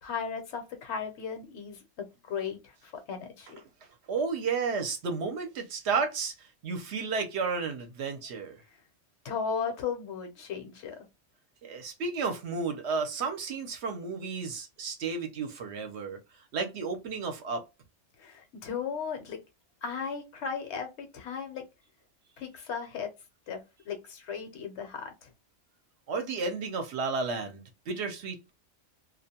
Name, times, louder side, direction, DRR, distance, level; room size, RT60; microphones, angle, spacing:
voice 1, 0.0-3.6 9.2-11.0 18.2-19.4 19.8-21.6 22.4-23.1 23.5-25.3, left 6 dB, 65° left, 0.9 m, -36 dB
voice 2, 4.1-8.6 11.6-16.2 16.5-17.6 26.1-28.5, right 4 dB, 65° right, 0.9 m, -32 dB
2.3 x 2.1 x 2.7 m
omnidirectional pair, 1.3 m